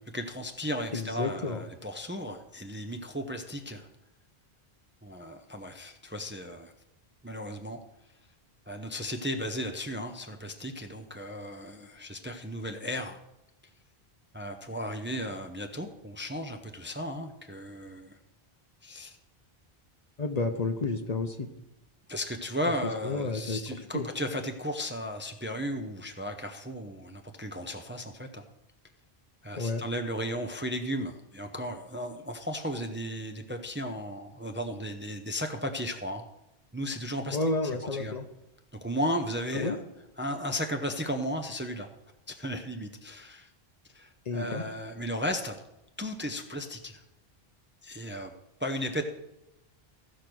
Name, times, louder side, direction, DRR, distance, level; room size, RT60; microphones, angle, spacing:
voice 1, 0.1-3.9 5.0-6.7 7.2-7.8 8.7-13.2 14.3-18.2 18.8-19.2 22.1-28.4 29.4-36.3 36.7-37.4 37.9-38.2 38.8-39.8 40.2-41.9 42.3-43.5 43.9-45.6 46.0-47.0 47.8-48.3 48.6-49.0, equal, 15° right, 5 dB, 0.6 m, -35 dB
voice 2, 0.9-1.6 20.2-21.5 23.0-24.1 29.6-29.8 37.3-38.2 39.5-39.8 44.3-44.6, left 3 dB, 45° left, 7 dB, 0.8 m, -31 dB
15.0 x 5.0 x 6.1 m, 0.88 s
omnidirectional pair, 1.0 m